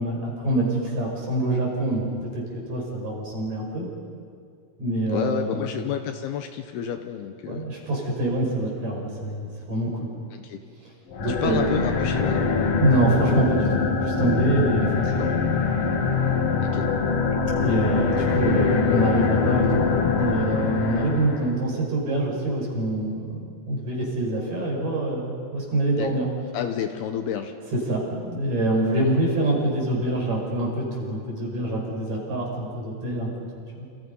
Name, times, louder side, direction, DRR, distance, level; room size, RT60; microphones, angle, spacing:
voice 1, 0.0-2.1 2.3-3.9 4.8-5.7 7.4-10.1 11.2-11.9 12.8-15.4 15.7-15.8 17.6-26.3 27.7-33.3 33.7-33.9, right 1 dB, 40° right, -1 dB, 6.9 m, -25 dB
voice 2, 5.1-7.6 10.3-10.6 11.3-12.7 15.1-15.3 16.6-16.9 26.0-26.3 26.5-27.5, left 9 dB, 75° left, 6 dB, 2.8 m, -30 dB
sound 1, 11.1-21.6, left 5 dB, 55° left, 1.8 m, -23 dB
29.5 x 28.5 x 5.5 m, 2.2 s
omnidirectional pair, 5.0 m